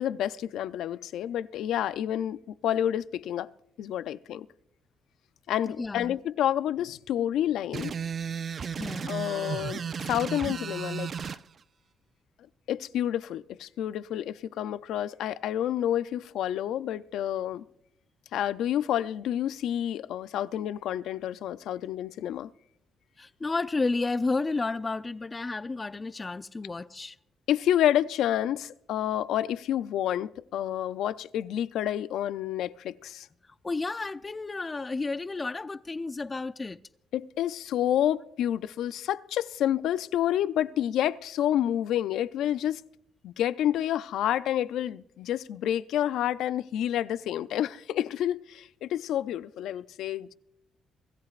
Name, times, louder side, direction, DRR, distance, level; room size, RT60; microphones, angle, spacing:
voice 1, 0.0-3.5 3.8-4.5 5.5-7.9 9.1-9.8 10.1-11.4 12.7-17.6 18.3-22.5 27.5-33.3 37.1-42.8 43.2-50.3, left 11 dB, 80° left, 0.4 m, -29 dB
voice 2, 5.6-6.2 8.8-9.1 23.2-27.2 33.6-36.8, left 3 dB, 25° left, 0.5 m, -31 dB
sound 1, 7.7-11.4, right 7 dB, 45° right, 0.4 m, -34 dB
24.0 x 14.5 x 2.5 m
cardioid pair, 90°, 0 cm